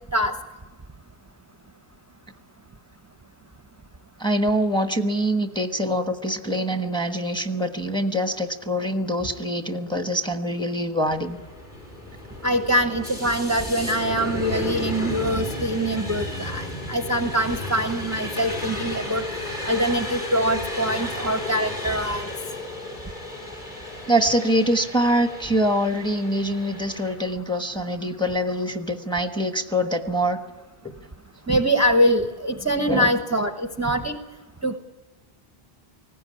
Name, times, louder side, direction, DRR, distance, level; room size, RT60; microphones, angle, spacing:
voice 1, 4.2-11.4 24.1-30.4 30.8-30.9 32.9-33.1, equal, 5° left, 6 dB, 1.2 m, -24 dB
sound 1, 11.1-27.1, left 1 dB, 50° left, 5.3 m, -33 dB
voice 2, 12.4-19.2 19.6-22.2 31.5-34.2 34.6-34.8, equal, 15° right, 7 dB, 0.8 m, -23 dB
19.0 x 16.0 x 9.7 m, 1.2 s
omnidirectional pair, 1.1 m